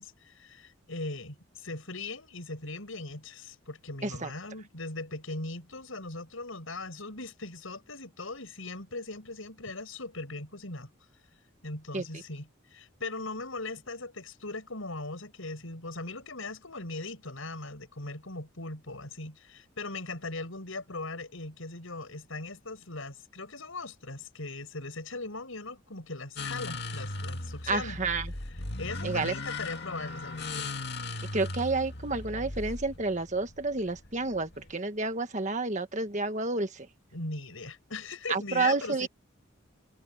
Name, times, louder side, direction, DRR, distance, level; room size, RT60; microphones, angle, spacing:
voice 1, 0.0-10.9 11.6-28.0 28.4-30.7 37.1-39.1, left 3 dB, 75° left, 6.1 m, -39 dB
sound 1, 26.4-34.7, left 2 dB, 55° left, 2.3 m, -38 dB
voice 2, 27.7-28.3 29.0-29.3 31.3-36.9 38.3-39.1, right 3 dB, 35° right, 1.6 m, -30 dB
head